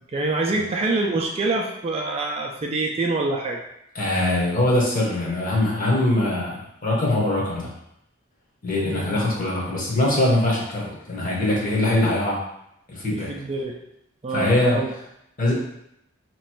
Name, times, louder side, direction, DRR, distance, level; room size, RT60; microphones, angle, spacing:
voice 1, 0.1-3.6 8.7-9.2 13.1-13.7 14.2-14.9, right 3 dB, 30° right, 0 dB, 0.3 m, -26 dB
voice 2, 3.9-7.7 8.6-12.4 12.9-13.3 14.3-14.8 15.4-15.5, left 1 dB, 40° left, -3 dB, 1.0 m, -22 dB
3.0 x 2.5 x 4.4 m, 0.79 s
head